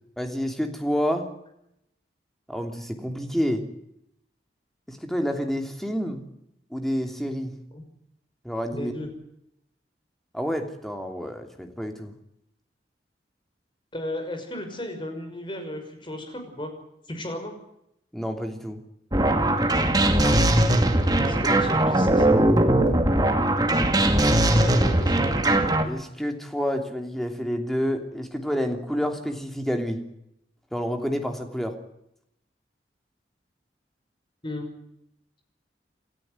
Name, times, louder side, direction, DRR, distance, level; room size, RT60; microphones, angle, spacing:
voice 1, 0.2-1.3 2.5-3.6 4.9-6.2 6.7-7.5 8.4-8.9 10.3-12.1 18.1-18.8 24.1-24.8 25.8-30.0 30.7-31.7, equal, ahead, 4 dB, 2.9 m, -29 dB
voice 2, 8.7-9.1 13.9-16.7 17.1-17.5 20.2-22.3 24.6-25.2 34.4-34.7, left 1 dB, 25° left, 5 dB, 6.0 m, -34 dB
sound 1, 19.1-25.8, right 1 dB, 20° right, 2.3 m, -20 dB
28.5 x 13.5 x 9.7 m, 0.79 s
head